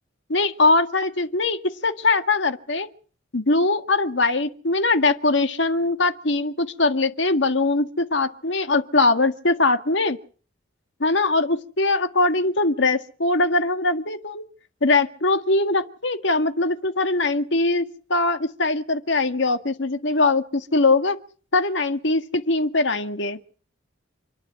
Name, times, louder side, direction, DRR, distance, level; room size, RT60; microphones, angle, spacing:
voice 1, 0.3-2.9 3.3-10.2 11.0-14.4 14.8-21.2 21.5-23.4, left 3 dB, 65° left, 1.8 m, -21 dB
28.5 x 10.5 x 8.8 m
head